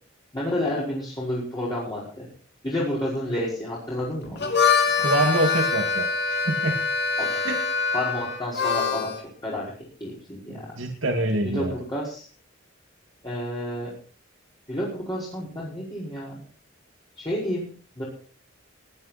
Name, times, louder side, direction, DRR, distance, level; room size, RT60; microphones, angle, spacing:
voice 1, 0.3-2.3 2.6-4.5 7.2-7.5 7.9-9.1 9.4-9.7 10.0-10.6 11.4-12.2 13.2-13.9 14.7-16.4 17.2-17.7 18.0-18.1, left 1 dB, 20° left, -7 dB, 5.5 m, -30 dB
Harmonica, 4.3-9.2, left 5 dB, 55° left, 3.1 m, -24 dB
voice 2, 5.0-6.1 6.5-6.8 7.4-7.6 10.8-11.7, right 2 dB, 85° right, 2 dB, 2.5 m, -24 dB
20.5 x 11.5 x 4.4 m, 0.41 s
head